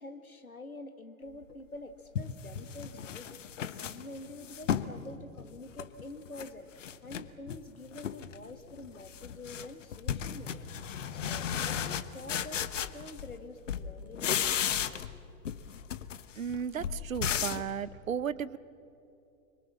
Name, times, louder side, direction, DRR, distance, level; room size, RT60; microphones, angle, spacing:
voice 1, 0.0-3.5 3.8-10.7 11.1-12.7 12.9-15.3, left 2 dB, 90° left, 7 dB, 1.8 m, -47 dB
sound 1, 1.5-1.6 2.1-5.0 5.4-6.5 6.8-7.6 7.9-8.4 8.7-13.4 13.7-15.2 15.4-17.7, left 8 dB, 60° left, 1.2 m, -35 dB
voice 2, 16.3-18.6, right 7 dB, 70° right, 18 dB, 0.9 m, -34 dB
25.0 x 23.5 x 7.2 m, 2.6 s
figure-of-eight pair, 105°, 41 cm